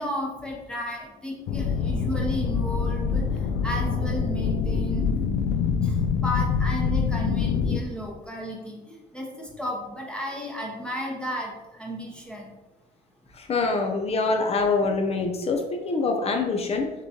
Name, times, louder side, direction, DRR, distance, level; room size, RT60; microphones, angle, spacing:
voice 1, 0.0-5.1 5.8-12.5, equal, 5° left, -2 dB, 0.8 m, -34 dB
sound 1, 1.5-7.8, left 6 dB, 85° left, 0.4 m, -25 dB
voice 2, 13.3-16.9, left 3 dB, 35° left, 3 dB, 0.6 m, -25 dB
5.9 x 3.0 x 2.9 m, 1.1 s
cardioid pair, 110°, 17 cm